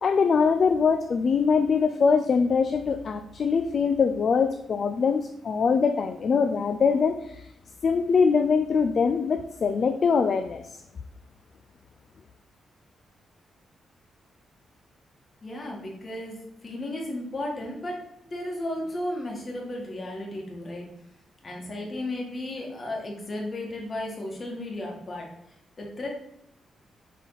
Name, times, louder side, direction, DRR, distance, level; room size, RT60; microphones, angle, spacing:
voice 1, 0.0-7.5 7.8-10.6, left 5 dB, 50° left, 8 dB, 0.4 m, -23 dB
voice 2, 15.4-20.9 21.4-26.1, left 1 dB, 35° left, -1 dB, 2.1 m, -34 dB
7.2 x 4.1 x 4.0 m, 0.79 s
cardioid pair, 105°, 0 cm